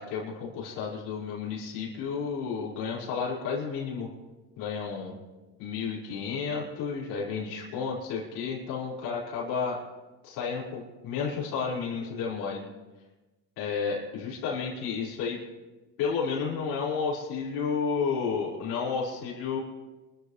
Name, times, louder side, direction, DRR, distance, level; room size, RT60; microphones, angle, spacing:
voice 1, 0.0-4.1 4.6-5.1 5.6-9.8 10.2-12.6 13.6-15.4 16.0-19.6, left 5 dB, 75° left, -6 dB, 5.3 m, -31 dB
27.5 x 14.5 x 3.3 m, 1.2 s
supercardioid pair, 115°, 38 cm